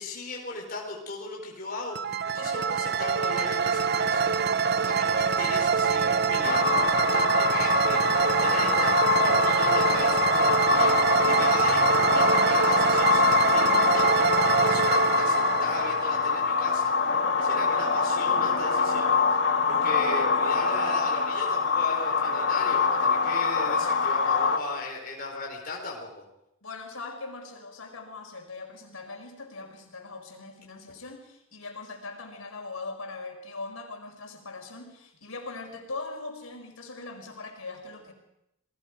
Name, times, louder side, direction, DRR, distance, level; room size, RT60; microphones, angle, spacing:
voice 1, 0.0-11.0 11.2-16.9 17.4-19.1 19.7-26.2, left 3 dB, 45° left, 0 dB, 4.3 m, -37 dB
sound 1, 1.9-16.7, right 6 dB, 50° right, 0.7 m, -25 dB
sound 2, 6.4-24.6, left 5 dB, 60° left, 1.9 m, -24 dB
voice 2, 11.0-11.5 17.7-18.1 26.6-38.1, left 3 dB, 90° left, 3 dB, 5.1 m, -41 dB
30.0 x 20.0 x 5.1 m, 0.83 s
head